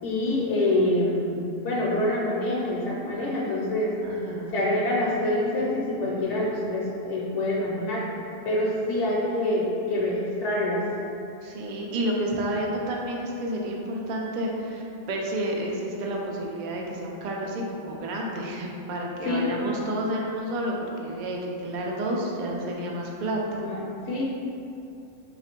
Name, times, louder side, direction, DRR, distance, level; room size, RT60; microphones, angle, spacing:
voice 1, 0.0-3.9 4.5-8.0 8.4-10.8 19.2-19.5 23.6-24.2, left 1 dB, 70° left, -5 dB, 0.9 m, -26 dB
voice 2, 4.0-4.5 11.4-23.6, right 1 dB, 65° right, -1 dB, 0.4 m, -30 dB
3.3 x 2.4 x 4.3 m, 2.8 s
omnidirectional pair, 1.3 m